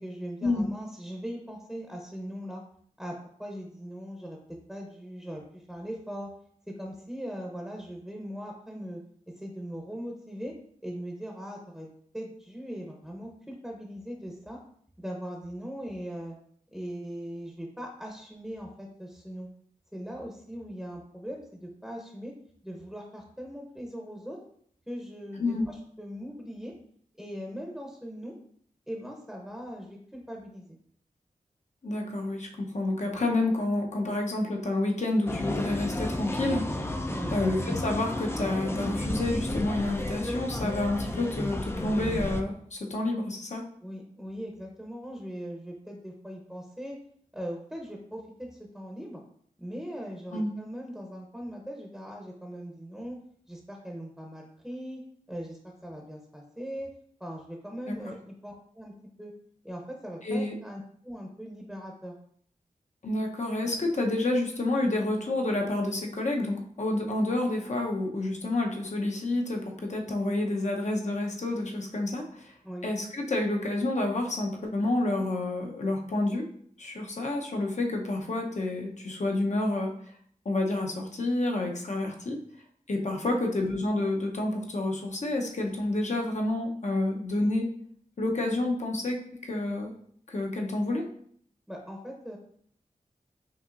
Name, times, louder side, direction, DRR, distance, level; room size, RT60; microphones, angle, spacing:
voice 1, 0.0-2.6 3.0-4.4 4.7-6.3 6.7-9.0 9.4-10.6 10.8-14.6 15.0-16.4 16.7-19.5 19.9-22.3 22.6-24.4 24.9-26.7 27.2-28.3 28.9-30.8 37.1-37.3 43.8-47.0 47.3-49.2 49.6-53.2 53.5-55.0 55.3-56.9 57.2-58.9 59.2-59.3 59.6-62.1 72.6-72.9 83.2-83.4 91.7-92.4, equal, ahead, 0 dB, 0.8 m, -40 dB
voice 2, 31.8-36.7 37.3-43.6 50.3-50.5 57.9-58.0 60.2-60.5 63.0-72.6 72.8-76.5 76.8-79.9 80.4-82.4 82.9-87.7 88.2-89.9 90.3-91.0, left 2 dB, 55° left, 1 dB, 0.9 m, -29 dB
sound 1, 35.3-42.4, left 1 dB, 15° left, 0.4 m, -32 dB
5.6 x 2.7 x 2.5 m, 0.62 s
cardioid pair, 45°, 14 cm